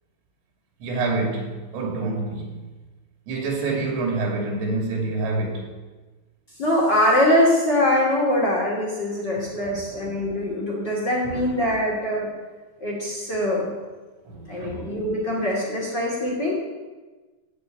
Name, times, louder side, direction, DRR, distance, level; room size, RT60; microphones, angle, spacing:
voice 1, 0.8-2.6 3.3-5.7 9.7-9.9 11.2-11.4 14.3-14.9, right 3 dB, 90° right, 0 dB, 5.4 m, -27 dB
voice 2, 6.6-12.3 12.8-13.7 14.5-16.5, left 1 dB, 30° left, -3 dB, 2.4 m, -23 dB
15.0 x 6.9 x 8.9 m, 1.3 s
omnidirectional pair, 5.7 m